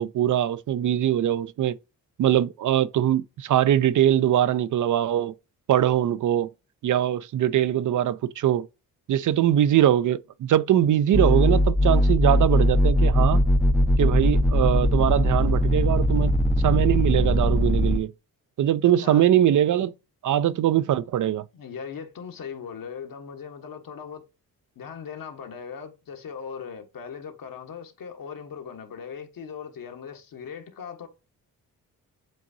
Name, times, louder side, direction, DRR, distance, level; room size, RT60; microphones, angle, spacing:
voice 1, 0.0-1.8 2.2-5.3 5.7-6.5 6.8-8.7 9.1-13.4 14.0-16.3 16.6-18.1 18.6-19.9 20.2-21.4, right 11 dB, 55° right, 0.5 m, -22 dB
sound 1, 11.1-18.0, equal, ahead, 0.5 m, -20 dB
voice 2, 18.8-19.2 21.5-24.2 24.8-31.1, left 6 dB, 65° left, 1.2 m, -39 dB
7.6 x 2.6 x 2.6 m
cardioid pair, 70°, 37 cm